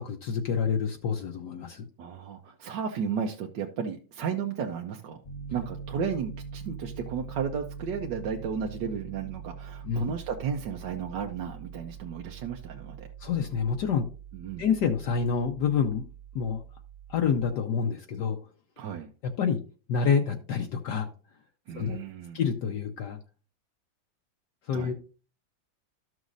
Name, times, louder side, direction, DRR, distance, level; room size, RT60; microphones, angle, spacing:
voice 1, 0.0-1.9 9.8-10.1 13.2-14.0 14.6-16.0 16.3-16.6 17.1-18.4 19.4-19.6 19.9-21.1 21.7-22.0 22.3-23.2 24.7-24.9, left 6 dB, 70° left, 3 dB, 1.3 m, -27 dB
voice 2, 2.0-5.2 5.5-13.1 14.3-14.6 18.8-19.1 21.7-22.4 24.7-24.9, right 7 dB, 70° right, 2 dB, 1.4 m, -34 dB
Piano, 5.2-17.5, right 6 dB, 30° left, 0.7 m, -43 dB
13.0 x 6.2 x 2.6 m, 0.37 s
omnidirectional pair, 2.0 m